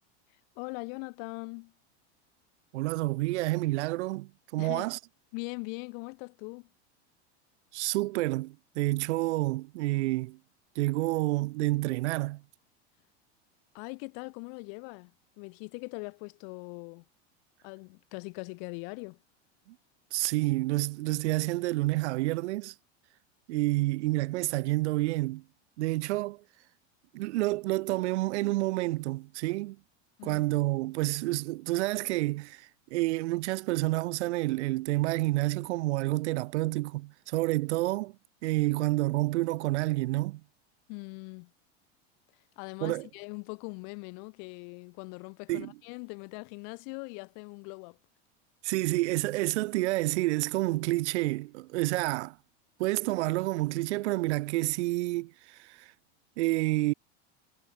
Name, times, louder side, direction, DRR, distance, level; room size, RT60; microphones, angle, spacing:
voice 1, 0.6-1.7 4.6-4.9 5.3-6.7 13.7-15.1 15.4-17.0 17.6-19.2 30.2-30.4 40.9-41.5 42.6-48.0, left 40 dB or more, 55° left, 0.7 m, -41 dB
voice 2, 2.7-5.0 7.7-10.4 10.8-12.4 20.1-22.7 23.5-25.4 25.8-26.4 27.1-29.8 30.2-38.1 38.4-40.4 42.8-43.1 45.5-45.7 48.6-52.4 52.8-55.9 56.4-56.9, right 20 dB, 85° right, 0.5 m, -29 dB
supercardioid pair, 135°, 34 cm